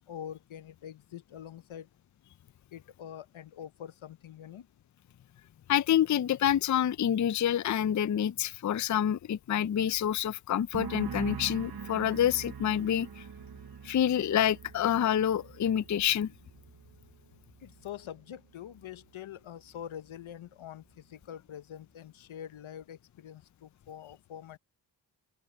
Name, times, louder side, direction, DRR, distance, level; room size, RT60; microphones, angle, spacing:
voice 1, 0.0-1.9 2.7-4.7 17.6-24.6, left 9 dB, 85° left, 0.8 m, -45 dB
voice 2, 5.7-13.2 13.8-16.3, left 10 dB, 40° left, 0.5 m, -27 dB
sound 1, 10.7-18.2 18.5-19.0, right 7 dB, 50° right, 1.0 m, -43 dB
open air
cardioid pair, 40°, 47 cm